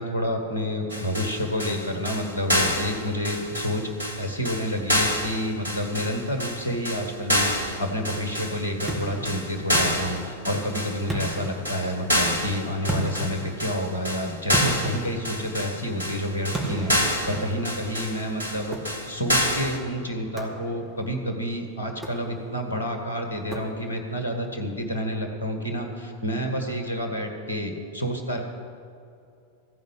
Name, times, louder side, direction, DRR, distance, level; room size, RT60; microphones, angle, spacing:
voice 1, 0.0-3.9 4.2-28.4, equal, 75° left, 4 dB, 1.7 m, -29 dB
sound 1, 0.9-19.8, equal, 80° right, 1.5 m, -28 dB
sound 2, 8.9-10.7 11.1-12.3 12.9-15.9 16.5-18.0 18.7-19.4 20.4-21.1 21.9-22.7 23.5-24.2, right 1 dB, 15° right, 1.9 m, -35 dB
15.0 x 5.2 x 8.6 m, 2.6 s
figure-of-eight pair, 90°, 0 cm